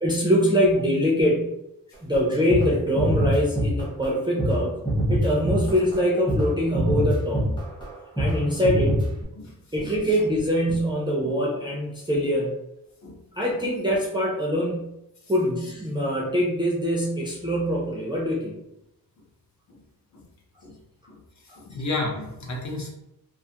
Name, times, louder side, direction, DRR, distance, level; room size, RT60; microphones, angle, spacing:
voice 1, 0.0-1.5 2.0-4.8 5.1-7.6 8.2-9.0 9.7-12.5 13.4-14.9 15.3-18.5 21.5-21.6, equal, 15° right, -4 dB, 0.3 m, -23 dB
sound 1, 2.1-2.2 2.5-2.7 3.0-4.1 4.4-4.6 4.8-6.0 6.3-6.5 6.7-7.9 8.2-8.4 8.6-9.2, equal, 15° left, 0.7 m, -24 dB
voice 2, 21.6-22.9, left 2 dB, 50° left, -1 dB, 0.7 m, -31 dB
2.4 x 2.3 x 2.7 m, 0.85 s
wide cardioid pair, 170°, 37 cm